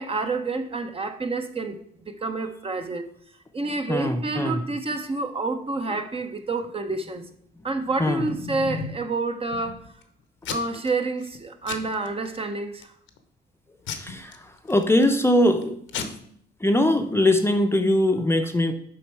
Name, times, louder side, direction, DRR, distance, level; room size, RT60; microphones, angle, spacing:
voice 1, 0.0-1.8 2.1-3.1 3.5-7.3 7.6-9.9 10.5-12.9, right 3 dB, 30° right, 0.8 m, -28 dB
voice 2, 3.9-4.6 8.0-8.2 13.9-16.2 16.6-18.7, left 1 dB, 10° left, 0.7 m, -22 dB
Packing tape duct tape / Tearing, 7.7-9.1 9.5-10.0 10.4-10.9 11.2-11.4 11.7-12.4 12.8-13.2 13.9-15.2 15.6-15.7 15.9-16.0, left 5 dB, 80° left, 0.9 m, -35 dB
7.2 x 4.6 x 4.6 m
cardioid pair, 90°, 20 cm